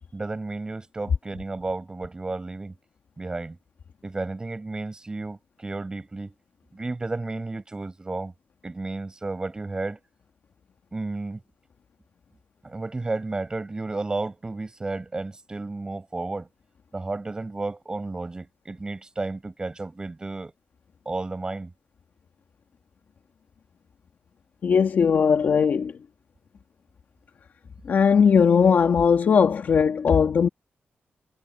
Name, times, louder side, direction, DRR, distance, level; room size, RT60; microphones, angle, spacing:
voice 1, 0.1-2.7 3.2-3.6 4.0-6.3 6.7-8.3 8.6-10.0 10.9-11.4 12.6-16.5 16.9-20.5 21.1-21.7, right 3 dB, 20° right, 7.7 m, -32 dB
voice 2, 24.6-26.0 27.8-30.5, left 6 dB, 55° left, 2.3 m, -19 dB
wide cardioid pair, 175°, 4 cm